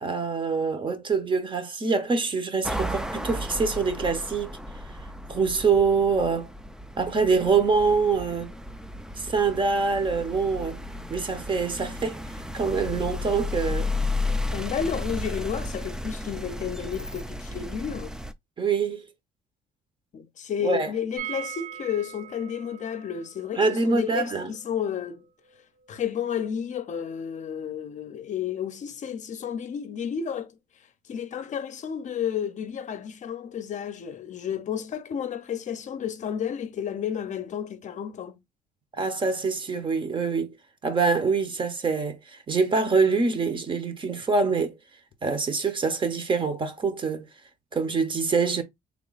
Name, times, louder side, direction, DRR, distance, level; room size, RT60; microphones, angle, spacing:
voice 1, 0.0-4.5 5.3-6.5 7.0-8.5 9.2-10.8 11.1-12.2 12.5-13.9 18.6-19.1 20.6-20.9 23.6-24.5 38.9-40.5 40.8-44.8 45.2-47.3 47.7-48.6, right 4 dB, 30° right, 0.8 m, -25 dB
sound 1, 2.6-18.3, left 2 dB, 5° right, 0.4 m, -33 dB
voice 2, 14.5-18.1 20.1-25.2 25.9-30.5 31.1-38.3, left 8 dB, 45° left, 0.6 m, -31 dB
sound 2, 21.2-26.9 27.2-27.3 27.5-27.6, right 11 dB, 65° right, 1.1 m, -42 dB
3.5 x 2.2 x 3.9 m
cardioid pair, 110°, 17 cm